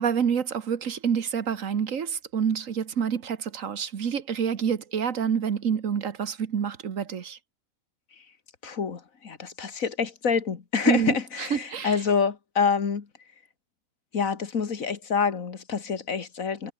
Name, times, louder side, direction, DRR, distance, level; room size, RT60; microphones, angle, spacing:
voice 1, 0.0-7.4 10.8-12.0, right 7 dB, 65° right, 1.6 m, -27 dB
voice 2, 8.6-13.1 14.1-16.7, left 6 dB, 70° left, 2.1 m, -27 dB
omnidirectional pair, 1.5 m